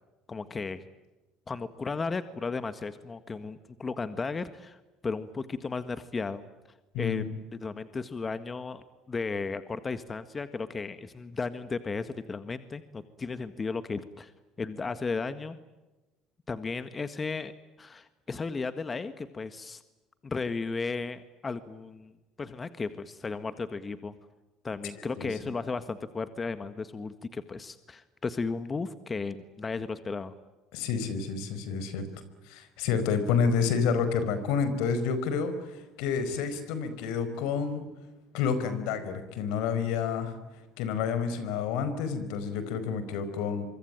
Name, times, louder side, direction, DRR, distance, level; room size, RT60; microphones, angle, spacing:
voice 1, 0.3-0.8 1.5-4.8 5.0-6.4 7.0-7.2 7.5-14.3 14.6-15.6 16.5-17.5 17.8-19.8 20.2-24.1 24.6-30.3, left 4 dB, 25° left, 11 dB, 1.7 m, -35 dB
voice 2, 6.9-7.4 25.2-25.5 30.7-32.1 32.5-37.8 38.3-40.4 40.8-43.7, left 6 dB, 80° left, 11 dB, 4.9 m, -29 dB
26.0 x 24.0 x 9.0 m, 1.1 s
supercardioid pair, 85°, 0 cm